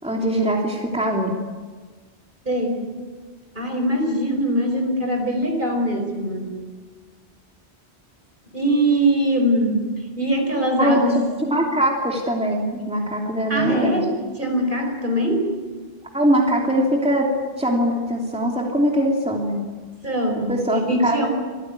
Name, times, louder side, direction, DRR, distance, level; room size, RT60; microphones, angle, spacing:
voice 1, 0.0-1.4 10.8-11.0 11.4-14.0 16.1-17.3 17.6-19.6 20.5-21.3, right 1 dB, 5° right, 0 dB, 2.9 m, -22 dB
voice 2, 2.4-2.8 3.5-6.6 8.5-9.9 10.2-11.2 13.5-15.5 20.0-21.3, right 1 dB, 50° right, 3 dB, 5.0 m, -22 dB
25.5 x 16.0 x 9.7 m, 1.4 s
omnidirectional pair, 1.1 m